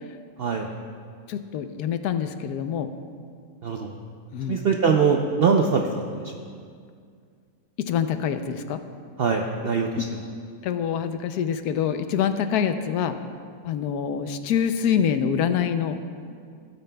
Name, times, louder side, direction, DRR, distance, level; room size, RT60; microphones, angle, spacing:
voice 1, 1.3-2.9 4.3-4.6 7.8-8.8 9.9-10.1 10.6-13.2 13.6-16.0, left 8 dB, 80° left, 9 dB, 1.1 m, -25 dB
voice 2, 3.6-3.9 4.5-5.9 6.1-6.2 9.2-9.9, right 6 dB, 70° right, 2 dB, 0.5 m, -22 dB
17.5 x 9.2 x 2.2 m, 2.2 s
omnidirectional pair, 1.6 m